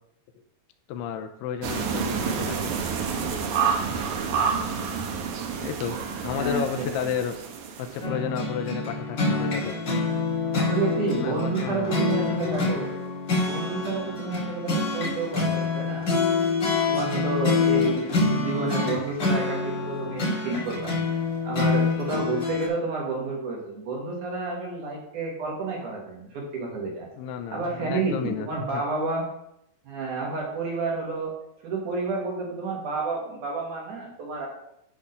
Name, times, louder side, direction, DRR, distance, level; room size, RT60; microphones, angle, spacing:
voice 1, 0.9-2.7 5.6-6.0 6.2-7.4 7.8-9.7 11.2-11.9 27.2-28.8, left 8 dB, 85° left, 6 dB, 2.6 m, -32 dB
sound 1, 1.6-8.0, right 6 dB, 80° right, 1.7 m, -29 dB
voice 2, 6.3-7.1 10.5-12.9 13.5-16.0 16.9-20.9 21.4-27.1 27.5-29.3 29.9-31.4 31.6-34.5, right 3 dB, 60° right, -2 dB, 2.5 m, -30 dB
sound 2, 8.0-22.7, left 3 dB, 40° left, 1.7 m, -26 dB
10.5 x 3.6 x 5.5 m, 0.78 s
omnidirectional pair, 4.8 m